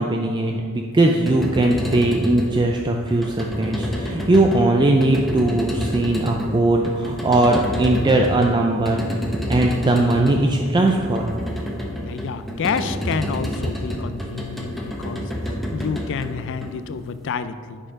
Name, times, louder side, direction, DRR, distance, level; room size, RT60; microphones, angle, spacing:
voice 1, 0.0-9.0 9.5-11.4, right 2 dB, 20° right, 1 dB, 0.4 m, -19 dB
sound 1, 1.1-17.2, equal, ahead, 1.0 m, -29 dB
voice 2, 12.0-15.3 15.7-17.8, left 6 dB, 60° left, 12 dB, 0.4 m, -28 dB
10.0 x 4.3 x 5.1 m, 2.1 s
head